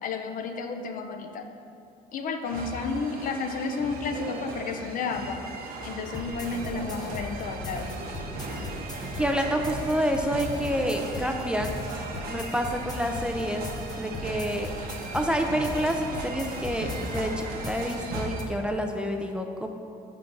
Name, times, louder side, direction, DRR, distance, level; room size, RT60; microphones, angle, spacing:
voice 1, 0.0-1.5 2.1-5.4 5.8-7.9, left 4 dB, 55° left, 6 dB, 0.5 m, -32 dB
sound 1, 2.4-18.5, right 3 dB, 60° right, 0.8 m, -37 dB
sound 2, 6.0-18.4, left 2 dB, 25° left, 0.7 m, -39 dB
voice 2, 9.2-11.7 12.2-13.7 14.0-14.7 15.1-19.8, equal, 5° right, 3 dB, 0.3 m, -28 dB
5.1 x 3.8 x 5.8 m, 2.6 s
cardioid pair, 110°, 17 cm